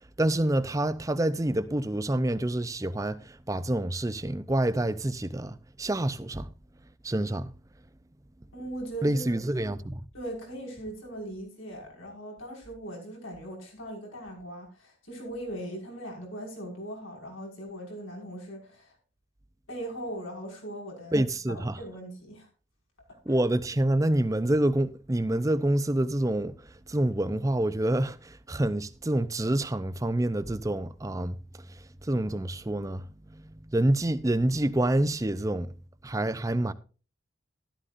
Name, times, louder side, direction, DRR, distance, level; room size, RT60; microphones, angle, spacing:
voice 1, 0.2-6.5 7.0-7.5 9.0-10.1 21.1-21.8 23.3-26.5 26.9-31.4 32.0-33.4 33.7-35.7 36.0-36.7, right 1 dB, 15° right, 0.6 m, -27 dB
voice 2, 8.5-9.2 10.1-19.0 19.7-22.5, right 1 dB, 90° left, 5.6 m, -39 dB
13.0 x 12.5 x 2.6 m
head